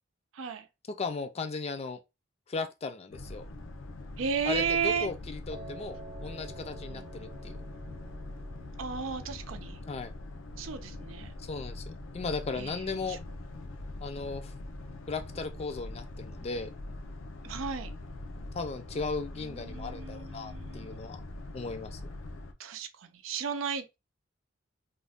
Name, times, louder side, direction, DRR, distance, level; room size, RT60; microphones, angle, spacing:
voice 1, 0.3-0.7 4.2-5.1 6.9-7.1 8.8-9.8 10.6-11.3 12.6-13.2 17.4-17.9 19.4-21.0 22.6-24.0, right 6 dB, 90° right, 0.5 m, -34 dB
voice 2, 1.0-2.0 2.5-3.5 4.4-7.6 9.9-10.1 11.4-13.2 14.0-14.5 15.1-16.7 18.5-21.2 21.5-22.1, left 4 dB, 30° left, 0.4 m, -36 dB
Boat Water vehicle, 3.1-22.5, left 2 dB, 90° left, 0.5 m, -43 dB
Piano, 5.5-11.6, right 3 dB, 35° right, 0.5 m, -51 dB
2.5 x 2.2 x 3.4 m
head